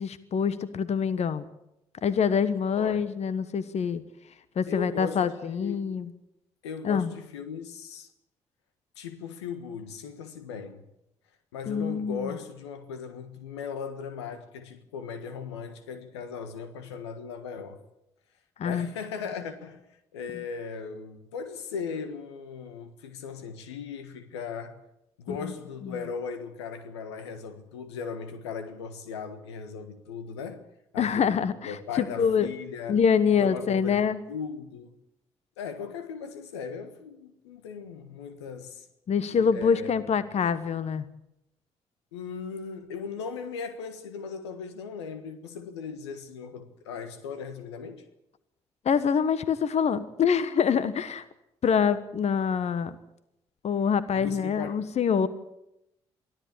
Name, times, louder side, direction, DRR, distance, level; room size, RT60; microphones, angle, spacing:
voice 1, 0.0-1.5 2.0-4.0 4.6-6.1 6.8-7.1 11.7-12.4 18.6-18.9 25.3-25.5 25.8-26.0 31.0-32.5 32.9-34.2 39.1-41.1 48.8-51.2 51.6-53.0 53.6-55.3, left 7 dB, 50° left, 1.2 m, -25 dB
voice 2, 2.7-3.1 4.7-5.9 6.6-8.1 9.0-10.8 11.5-17.8 18.6-19.8 20.1-24.8 25.2-30.6 30.9-31.3 31.6-33.0 33.2-34.9 35.6-38.9 39.3-39.9 42.1-48.0 54.1-54.8, left 6 dB, 80° left, 1.5 m, -38 dB
23.5 x 15.0 x 8.5 m
figure-of-eight pair, 40°, 14 cm